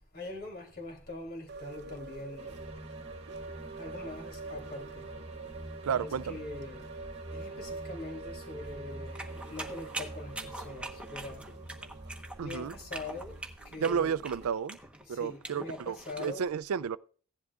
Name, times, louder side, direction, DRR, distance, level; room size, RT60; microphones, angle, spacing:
voice 1, 0.1-2.6 3.5-5.1 5.9-6.9 7.3-13.4 13.6-14.2 15.0-16.5, left 2 dB, 50° left, 3.1 m, -43 dB
sound 1, 1.5-14.5, right 3 dB, 55° right, 0.8 m, -46 dB
sound 2, 2.4-13.6, right 1 dB, 30° right, 1.6 m, -48 dB
voice 2, 5.8-6.4 12.4-12.7 13.8-14.8 15.1-17.0, right 7 dB, 90° right, 0.4 m, -32 dB
sound 3, 9.1-16.3, right 2 dB, 5° right, 1.1 m, -43 dB
16.0 x 11.0 x 2.5 m
head